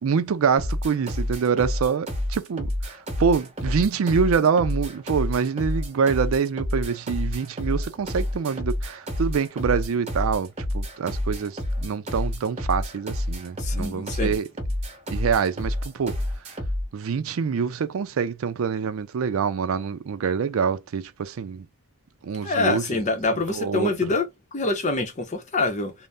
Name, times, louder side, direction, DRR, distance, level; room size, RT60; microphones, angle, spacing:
voice 1, 0.0-10.5 10.7-14.5 15.1-16.2 16.9-21.7 22.2-23.0 23.5-24.1, right 6 dB, 75° right, 0.4 m, -25 dB
sound 1, 0.6-16.9, left 1 dB, 30° right, 0.9 m, -29 dB
voice 2, 13.6-14.4 22.4-24.3 24.5-25.9, left 3 dB, 35° left, 0.7 m, -25 dB
2.6 x 2.0 x 3.4 m
head